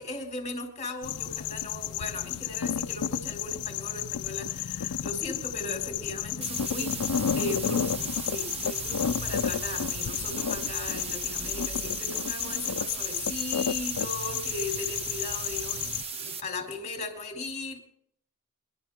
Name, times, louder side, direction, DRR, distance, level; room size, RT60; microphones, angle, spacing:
voice 1, 0.0-6.9 7.3-15.8 16.2-17.8, left 3 dB, 30° left, 3 dB, 2.5 m, -37 dB
sound 1, 1.0-16.0, left 8 dB, 90° left, 0.5 m, -32 dB
sound 2, 6.4-16.4, right 5 dB, 25° right, 1.0 m, -37 dB
22.5 x 12.0 x 3.6 m, 0.65 s
head